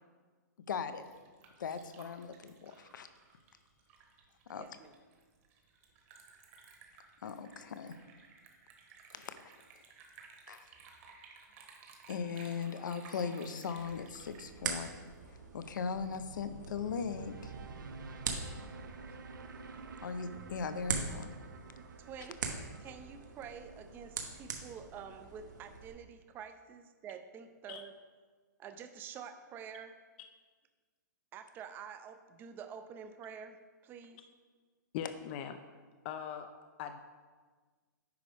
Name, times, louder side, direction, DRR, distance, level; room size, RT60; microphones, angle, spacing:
voice 1, 0.7-1.0 1.6-3.1 4.5-4.7 7.2-8.0 9.1-9.4 10.5-10.7 12.1-14.9 15.3-17.5 20.0-21.3, left 6 dB, 80° left, 11 dB, 0.6 m, -39 dB
Liquid, 0.9-15.3, right 5 dB, 40° right, 1.3 m, -57 dB
voice 2, 4.6-4.9 22.0-22.4 22.8-27.9 28.6-29.9 31.3-33.6 33.8-34.2, right 7 dB, 20° right, 9 dB, 0.5 m, -48 dB
sound 1, 13.7-25.9, right 5 dB, 70° right, 1.1 m, -43 dB
sound 2, 15.6-24.7, right 4 dB, 90° right, 0.7 m, -50 dB
voice 3, 34.9-35.5 36.0-36.5 36.8-37.0, left 9 dB, 35° left, 7 dB, 0.4 m, -40 dB
9.4 x 5.1 x 3.4 m, 1.5 s
hypercardioid pair, 145°, 10 cm